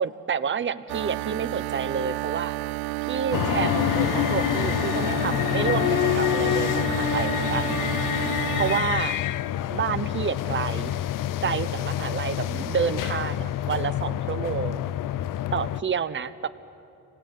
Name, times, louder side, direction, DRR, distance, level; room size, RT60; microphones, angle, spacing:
voice 1, 0.0-2.5 3.1-7.8 8.5-9.2 9.7-11.0 11.4-14.9 15.5-16.5, right 7 dB, 30° right, 11 dB, 1.0 m, -29 dB
sound 1, 0.9-8.8, right 20 dB, 75° right, 0.5 m, -31 dB
sound 2, 3.3-15.8, left 13 dB, 60° left, 0.6 m, -27 dB
26.0 x 18.0 x 9.4 m, 2.8 s
supercardioid pair, 80°, 37 cm